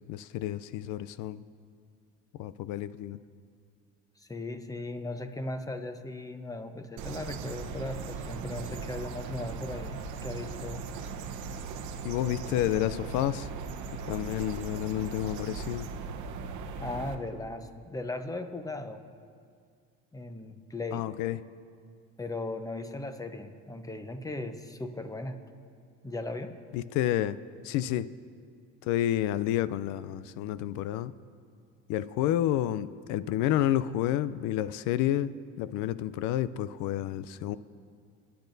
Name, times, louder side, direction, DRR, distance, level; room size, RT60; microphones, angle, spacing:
voice 1, 0.1-1.4 2.3-3.2 12.0-13.5 14.1-15.9 20.9-21.4 26.7-27.4 27.6-28.1 28.8-31.1 31.9-37.6, left 12 dB, 75° left, 16 dB, 0.5 m, -30 dB
voice 2, 4.2-10.9 16.8-19.0 20.1-21.1 22.2-25.4 26.0-26.6, left 2 dB, 10° left, 8 dB, 0.9 m, -37 dB
sound 1, 7.0-17.1, right 5 dB, 70° right, 1.0 m, -39 dB
26.0 x 10.0 x 2.7 m, 2.2 s
supercardioid pair, 80°, 30 cm